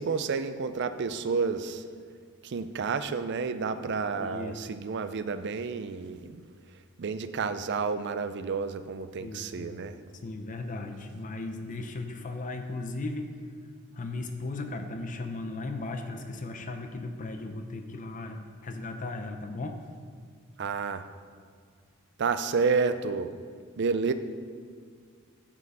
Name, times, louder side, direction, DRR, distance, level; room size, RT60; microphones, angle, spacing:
voice 1, 0.0-1.8 2.4-6.4 7.0-10.0 20.6-21.0 22.2-23.3 23.8-24.1, right 5 dB, 55° right, 11 dB, 0.4 m, -30 dB
voice 2, 4.2-4.6 9.2-9.8 10.2-13.3 13.9-19.8, left 2 dB, 35° left, 6 dB, 0.6 m, -36 dB
7.2 x 6.7 x 5.5 m, 2.1 s
head